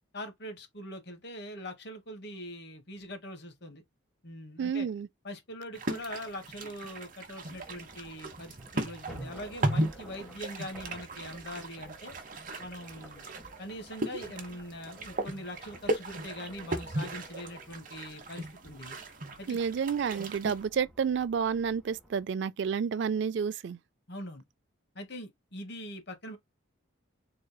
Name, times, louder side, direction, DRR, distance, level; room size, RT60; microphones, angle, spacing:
voice 1, 0.1-3.8 4.2-4.9 5.2-12.1 12.6-13.2 13.6-19.0 19.4-19.6 24.1-24.4 24.9-26.4, equal, 55° left, 1.3 m, -42 dB
voice 2, 4.6-5.1 19.5-23.8, right 6 dB, 60° right, 0.3 m, -30 dB
sound 1, 5.7-20.6, right 1 dB, 40° right, 1.0 m, -37 dB
sound 2, 7.4-22.2, equal, ahead, 1.4 m, -54 dB
4.0 x 3.9 x 2.2 m
head